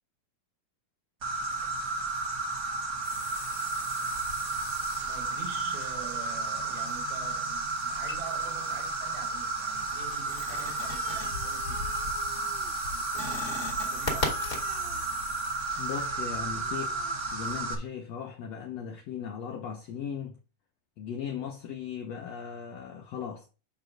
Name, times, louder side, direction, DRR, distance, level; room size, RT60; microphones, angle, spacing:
Insect, 1.2-17.7, right 3 dB, 40° right, 1.4 m, -32 dB
sound 1, 3.0-5.5 7.9-9.0 9.4-16.0, left 2 dB, 25° left, 1.8 m, -40 dB
voice 1, 5.1-14.5, right 6 dB, 85° right, 3.3 m, -45 dB
Animal, 10.6-17.3, right 1 dB, 65° right, 1.1 m, -49 dB
voice 2, 15.8-20.3 21.0-23.5, left 8 dB, 80° left, 1.5 m, -38 dB
9.3 x 3.2 x 6.3 m
omnidirectional pair, 4.2 m